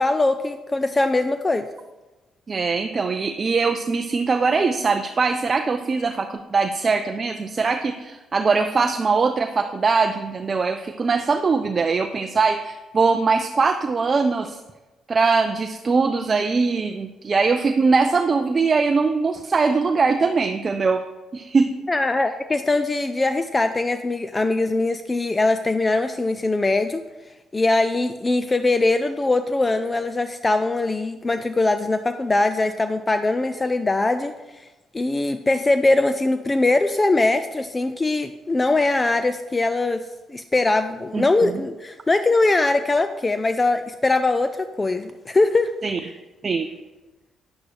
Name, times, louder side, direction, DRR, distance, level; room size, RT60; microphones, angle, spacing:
voice 1, 0.0-1.7 21.9-27.0 27.5-34.7 34.9-40.0 40.3-45.7, left 2 dB, 20° left, 9 dB, 0.4 m, -21 dB
voice 2, 2.5-14.6 15.1-21.0 21.3-21.7 41.1-41.5 45.8-46.0 46.4-46.7, right 4 dB, 35° right, 7 dB, 0.4 m, -21 dB
9.4 x 7.8 x 3.3 m, 1.2 s
cardioid pair, 90°, 0 cm